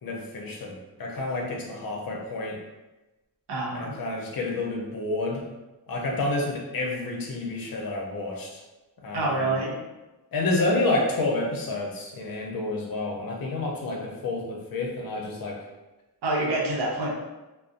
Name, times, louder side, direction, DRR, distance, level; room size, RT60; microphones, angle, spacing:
voice 1, 0.0-2.6 3.7-5.4 5.9-8.6 9.0-9.6 10.3-15.6, left 2 dB, 60° left, 0 dB, 0.6 m, -29 dB
voice 2, 3.5-3.9 9.1-9.8 16.2-17.1, right 2 dB, 90° right, -3 dB, 0.7 m, -27 dB
2.6 x 2.0 x 2.4 m, 1.1 s
cardioid pair, 70°, 39 cm